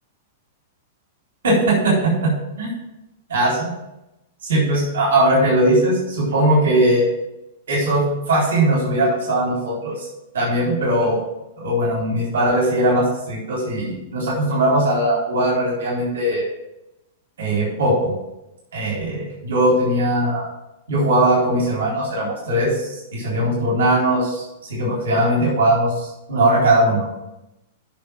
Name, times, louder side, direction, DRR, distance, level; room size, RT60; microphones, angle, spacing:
voice 1, 1.4-2.7 3.3-3.7 4.4-7.1 7.7-10.1 10.3-11.2 11.6-16.5 17.4-18.2 18.7-20.5 20.9-27.1, right 1 dB, 60° right, -4 dB, 4.0 m, -19 dB
8.5 x 6.3 x 6.3 m, 0.92 s
figure-of-eight pair, 100°, 0 cm